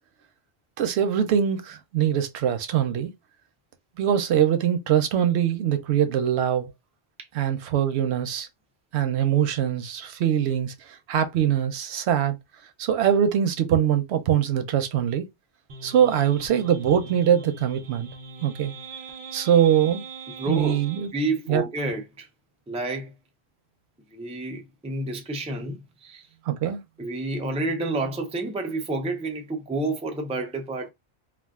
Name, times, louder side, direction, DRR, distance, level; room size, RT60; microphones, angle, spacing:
voice 1, 0.8-3.1 4.0-6.7 7.3-8.5 8.9-12.4 12.8-15.3 15.8-18.1 18.4-18.7 19.3-20.0 20.5-21.1 21.5-21.6 26.5-26.8, right 9 dB, 90° right, 0.9 m, -23 dB
sound 1, 15.7-21.1, right 4 dB, 55° right, 0.8 m, -41 dB
voice 2, 20.4-20.8 21.1-22.3 22.7-23.1 24.1-26.3 26.6-30.9, right 2 dB, 10° right, 0.3 m, -29 dB
2.4 x 2.3 x 3.4 m
omnidirectional pair, 1.1 m